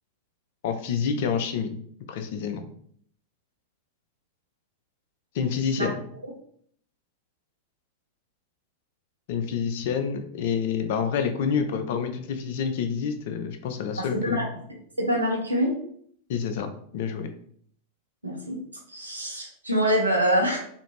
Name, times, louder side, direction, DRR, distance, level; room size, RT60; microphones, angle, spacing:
voice 1, 0.6-1.8 2.1-2.6 5.3-6.0 9.3-14.5 16.3-16.7 16.9-17.3, left 6 dB, 50° left, 6 dB, 0.4 m, -28 dB
voice 2, 14.0-14.5 15.0-15.8 18.2-18.6 18.9-20.6, equal, 80° right, 0 dB, 0.7 m, -25 dB
2.6 x 2.5 x 3.0 m, 0.62 s
figure-of-eight pair, 90°, 0 cm